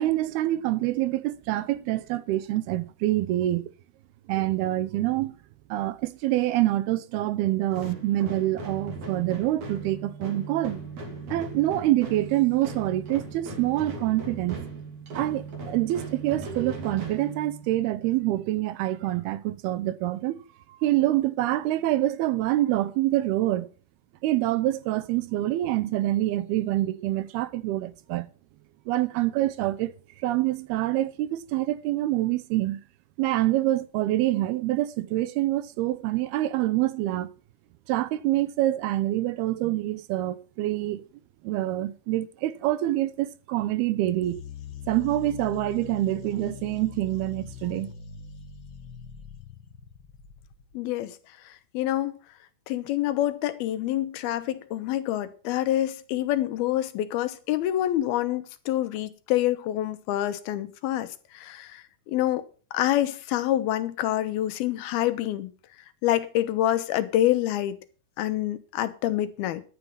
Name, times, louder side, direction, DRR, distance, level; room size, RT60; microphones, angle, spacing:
voice 1, 0.0-3.7 4.3-5.4 5.7-10.8 11.3-14.6 15.2-20.4 20.8-23.7 24.2-28.3 28.9-29.9 30.2-32.8 33.2-37.3 37.9-41.0 41.4-44.4 44.9-47.9, right 15 dB, 85° right, 2.8 m, -26 dB
sound 1, 7.7-17.9, right 3 dB, 50° right, 4.1 m, -38 dB
sound 2, 44.2-50.7, left 8 dB, 65° left, 1.1 m, -42 dB
voice 2, 50.7-51.2 51.5-52.2 52.7-62.4 62.7-65.5 66.0-67.8 68.2-69.6, left 13 dB, 85° left, 2.9 m, -27 dB
11.0 x 9.6 x 5.7 m
omnidirectional pair, 4.4 m